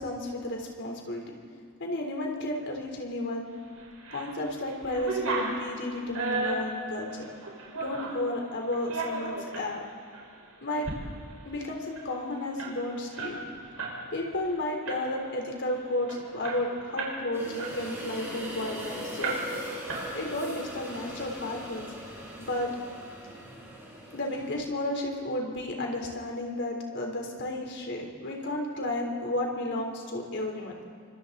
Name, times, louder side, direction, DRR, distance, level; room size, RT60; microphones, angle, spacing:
voice 1, 0.0-1.3 1.8-3.5 4.1-7.3 7.7-9.9 10.6-10.9 11.4-13.4 14.1-19.4 20.1-21.9 22.4-22.7 24.1-30.7, left 1 dB, 60° left, 1 dB, 3.7 m, -32 dB
sound 1, 3.8-4.3 4.6-8.2 8.7-9.7 10.1-10.3 10.7-11.0 11.3-11.4 11.7-14.0 14.3-14.5 14.9-15.3 15.8-15.9 16.1-17.2 17.6-18.8 19.2-19.6 19.9-20.5, right 3 dB, 90° right, 5.1 m, -34 dB
sound 2, 17.3-24.5, right 1 dB, 15° right, 8.0 m, -40 dB
27.5 x 24.5 x 4.1 m, 2.1 s
head